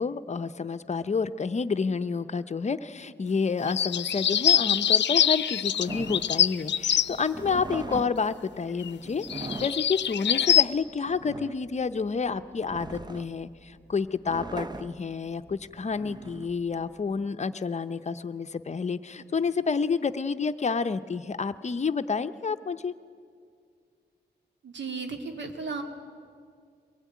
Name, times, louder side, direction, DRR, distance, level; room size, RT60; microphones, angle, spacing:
voice 1, 0.0-22.9, left 5 dB, 40° left, 11 dB, 0.7 m, -29 dB
sound 1, 3.7-7.2 8.8-8.9 9.2-10.6, left 9 dB, 80° left, 0.6 m, -24 dB
sound 2, 5.9-17.2, right 2 dB, 25° right, 0.8 m, -41 dB
voice 2, 24.6-25.8, right 4 dB, 90° right, 4 dB, 2.5 m, -35 dB
23.5 x 18.0 x 9.4 m, 2.2 s
wide cardioid pair, 125°, 18 cm